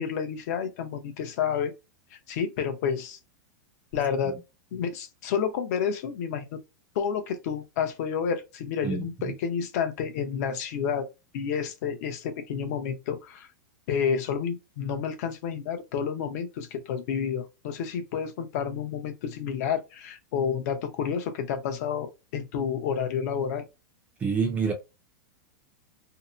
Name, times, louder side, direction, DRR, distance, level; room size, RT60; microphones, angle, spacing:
voice 1, 0.0-1.7 2.3-3.2 3.9-4.4 4.7-6.6 6.9-11.1 11.3-13.5 13.9-23.6, left 7 dB, 55° left, 0.7 m, -30 dB
voice 2, 24.2-24.7, right 5 dB, 15° right, 0.4 m, -26 dB
2.7 x 2.0 x 2.4 m
supercardioid pair, 155°, 10 cm